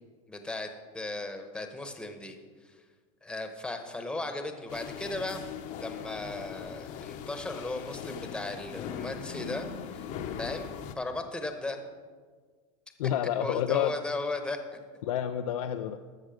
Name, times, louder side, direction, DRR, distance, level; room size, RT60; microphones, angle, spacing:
voice 1, 0.3-2.8 3.2-5.4 5.8-10.1 10.4-10.7 11.0-11.8 13.4-14.8, left 2 dB, 5° left, 6 dB, 1.0 m, -36 dB
sound 1, 4.7-10.9, left 7 dB, 45° left, 0.9 m, -40 dB
voice 2, 13.0-13.9 15.0-16.0, left 11 dB, 85° left, 7 dB, 0.5 m, -29 dB
13.5 x 6.4 x 5.1 m, 1.5 s
supercardioid pair, 120°, 18 cm